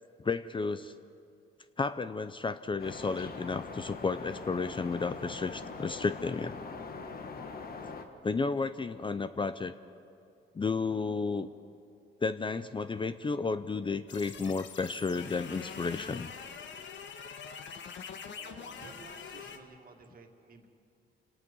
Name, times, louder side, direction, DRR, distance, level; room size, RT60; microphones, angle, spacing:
voice 1, 0.2-0.9 1.8-6.6 8.2-9.7 10.5-11.5 12.2-16.3, left 4 dB, 25° left, 12 dB, 0.6 m, -32 dB
sound 1, 2.8-8.1, left 4 dB, 50° left, 1.8 m, -42 dB
sound 2, 14.1-19.6, left 6 dB, 65° left, 1.5 m, -44 dB
voice 2, 18.3-20.7, right 4 dB, 45° right, 3 dB, 2.4 m, -53 dB
27.0 x 18.5 x 5.5 m, 2.5 s
cardioid pair, 90°, 20 cm